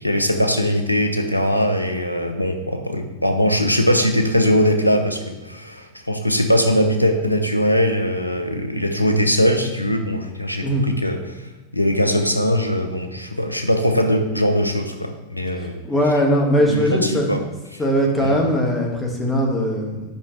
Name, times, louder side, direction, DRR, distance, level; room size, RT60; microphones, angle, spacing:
voice 1, 0.0-15.8 16.7-17.4 17.7-17.8 18.2-18.3, equal, 90° left, 5 dB, 0.8 m, -21 dB
voice 2, 15.8-17.3 17.8-20.0, equal, 10° left, 0 dB, 1.8 m, -20 dB
8.5 x 5.5 x 3.3 m, 1.1 s
figure-of-eight pair, 90°, 0 cm